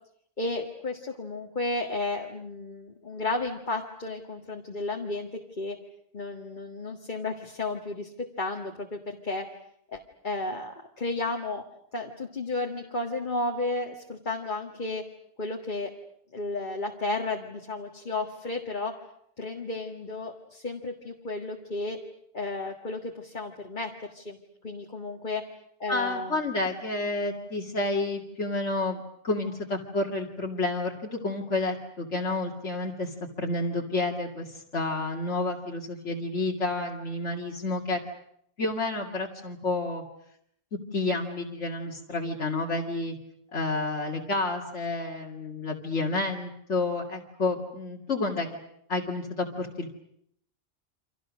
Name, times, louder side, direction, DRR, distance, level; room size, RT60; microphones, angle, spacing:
voice 1, 0.4-5.3 5.6-5.8 6.1-8.1 8.4-9.5 9.9-11.6 11.9-15.0 15.4-15.9 16.3-18.9 19.4-22.0 22.3-24.4 24.6-25.4 25.8-26.4, left 2 dB, 40° left, 1 dB, 2.0 m, -33 dB
voice 2, 25.9-38.0 38.6-40.0 40.9-43.2 43.5-48.5 48.9-49.9, left 2 dB, 80° left, -1 dB, 2.7 m, -30 dB
29.5 x 26.0 x 6.3 m, 0.70 s
omnidirectional pair, 1.2 m